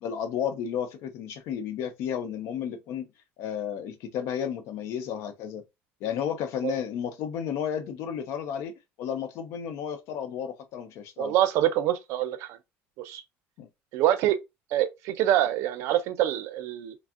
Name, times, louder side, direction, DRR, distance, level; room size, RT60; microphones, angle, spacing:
voice 1, 0.0-3.1 3.4-5.6 6.0-11.3 13.6-13.7, left 8 dB, 70° left, 0.5 m, -32 dB
voice 2, 11.2-12.6 13.0-13.2 13.9-14.4 14.7-16.9, right 12 dB, 75° right, 0.4 m, -25 dB
3.4 x 2.0 x 2.3 m
cardioid pair, 155°, 5 cm